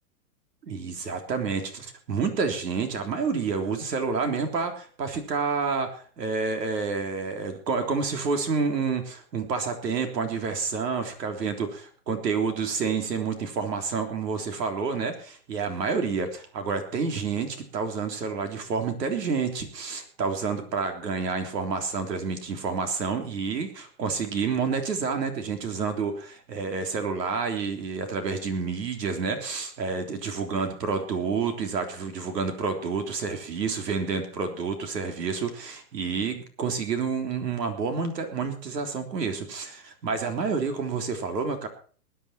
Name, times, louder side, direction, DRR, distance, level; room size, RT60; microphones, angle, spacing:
voice 1, 0.6-41.7, right 5 dB, 85° right, 6 dB, 3.6 m, -29 dB
20.0 x 10.5 x 4.4 m, 0.42 s
hypercardioid pair, 160°, 48 cm